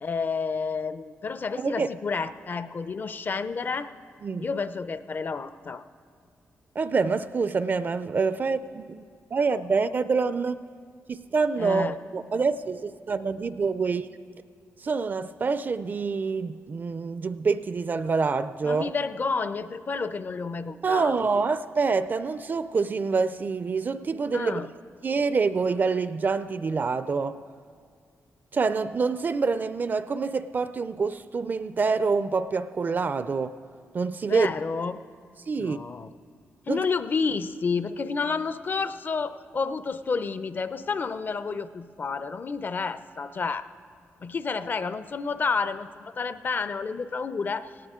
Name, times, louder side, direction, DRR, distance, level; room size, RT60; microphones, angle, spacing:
voice 1, 0.0-3.9 4.4-5.8 11.6-12.0 18.6-21.4 24.3-24.7 34.3-35.0 35.6-36.1 36.7-43.7 44.2-47.9, left 4 dB, 40° left, 0.5 m, -30 dB
voice 2, 1.6-1.9 4.2-4.5 6.8-9.0 9.3-10.6 11.1-14.1 14.8-18.9 20.8-24.7 25.0-27.4 28.5-33.6 33.9-34.5 35.5-35.8 36.7-36.9, right 4 dB, 40° right, 0.4 m, -26 dB
18.5 x 17.0 x 3.7 m
wide cardioid pair, 135°, 5 cm